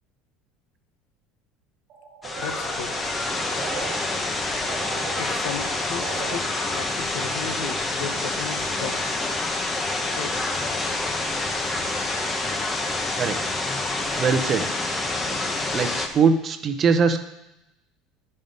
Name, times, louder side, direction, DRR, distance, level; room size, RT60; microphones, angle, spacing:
sound 1, 1.9-4.0 4.3-6.4, right 8 dB, 50° right, 1.0 m, -39 dB
sound 2, 2.2-16.1, left 2 dB, 15° left, 0.8 m, -27 dB
voice 1, 2.4-2.9 5.2-9.1 10.1-10.4, left 6 dB, 80° left, 8 dB, 0.8 m, -35 dB
voice 2, 14.2-14.7 15.7-17.2, right 5 dB, 30° right, 9 dB, 0.6 m, -21 dB
11.0 x 5.5 x 5.2 m, 0.88 s
cardioid pair, 145°, 0 cm